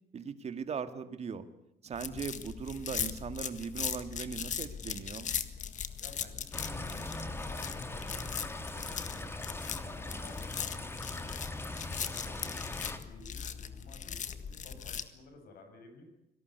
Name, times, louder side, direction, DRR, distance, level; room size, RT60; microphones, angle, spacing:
voice 1, 0.1-1.5 1.8-5.3, right 6 dB, 40° right, 10 dB, 2.2 m, -39 dB
sound 1, 1.9-15.0, left 8 dB, 45° left, 1.8 m, -39 dB
voice 2, 6.0-11.4 12.1-16.0, left 3 dB, 65° left, 6 dB, 7.8 m, -55 dB
sound 2, 6.5-13.0, left 2 dB, 15° left, 2.7 m, -40 dB
25.0 x 18.5 x 8.2 m, 0.85 s
cardioid pair, 110°, 17 cm